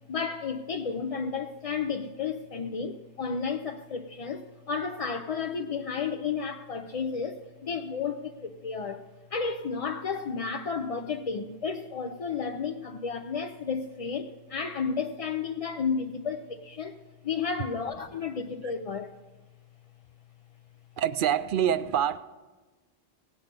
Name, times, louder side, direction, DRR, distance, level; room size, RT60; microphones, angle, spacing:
voice 1, 0.1-17.0 17.2-19.2, left 5 dB, 45° left, 0.5 m, -32 dB
voice 2, 21.0-22.2, right 10 dB, 60° right, 0.7 m, -25 dB
18.0 x 8.5 x 5.2 m
omnidirectional pair, 1.1 m